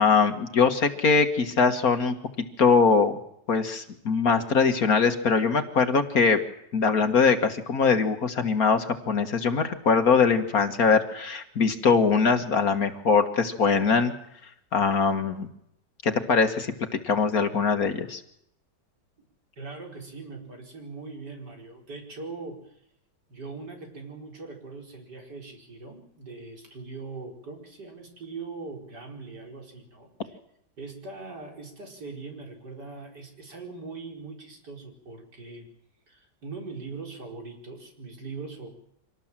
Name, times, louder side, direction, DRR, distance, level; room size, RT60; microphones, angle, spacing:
voice 1, 0.0-2.2 2.6-3.2 3.5-6.4 6.7-14.1 14.7-15.5 16.0-16.7 17.0-18.2, left 5 dB, 55° left, 7 dB, 2.0 m, -22 dB
voice 2, 19.6-22.8 23.3-30.4 30.8-35.7 36.1-38.7, right 4 dB, 70° right, 1 dB, 5.3 m, -41 dB
25.5 x 18.5 x 7.4 m, 0.75 s
omnidirectional pair, 1.9 m